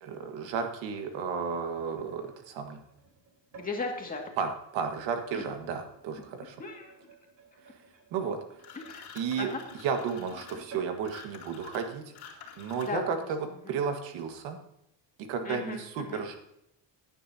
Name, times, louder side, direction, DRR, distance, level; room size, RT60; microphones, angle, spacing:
voice 1, 0.0-2.8 4.4-6.6 8.1-8.4 9.1-9.5 9.8-14.6 15.3-16.4, right 6 dB, 90° right, 5 dB, 1.8 m, -33 dB
sound 1, 1.1-4.3 4.9-12.2 12.6-12.8 13.1-13.4 14.1-14.2, right 4 dB, 45° right, 4.7 m, -54 dB
voice 2, 3.5-4.2 5.3-5.4 6.6-6.9 8.7-9.1 9.4-9.6 12.8-13.3 13.6-13.8 15.4-16.2, left 4 dB, 20° left, 1 dB, 2.2 m, -36 dB
sound 2, 8.6-13.2, left 7 dB, 60° left, 2.3 m, -49 dB
16.0 x 10.0 x 2.8 m, 0.80 s
cardioid pair, 155°, 44 cm